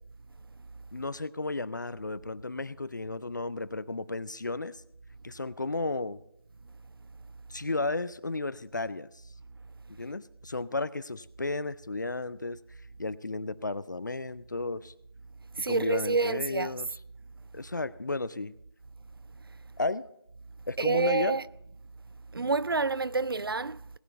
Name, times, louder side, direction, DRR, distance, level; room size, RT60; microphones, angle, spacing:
voice 1, 0.9-4.8 5.2-6.2 7.5-9.2 9.9-12.6 13.0-14.9 15.7-16.9 17.5-18.5 19.8-20.0 20.7-21.4, left 2 dB, 50° left, 0.5 m, -33 dB
voice 2, 15.5-16.8 20.8-21.4 22.3-24.0, right 3 dB, 65° right, 0.5 m, -28 dB
18.5 x 9.2 x 4.0 m
figure-of-eight pair, 175°, 13 cm